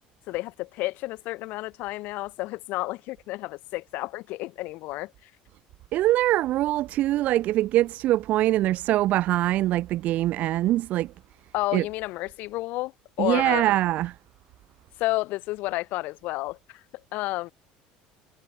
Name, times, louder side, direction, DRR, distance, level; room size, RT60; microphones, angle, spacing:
voice 1, 0.3-5.3 11.5-12.9 13.2-13.7 15.0-16.8 17.1-17.5, left 20 dB, 65° left, 2.5 m, -31 dB
voice 2, 5.9-11.1 11.7-11.8 13.2-14.1, right 15 dB, 55° right, 1.1 m, -23 dB
cardioid pair, 130°, 3 cm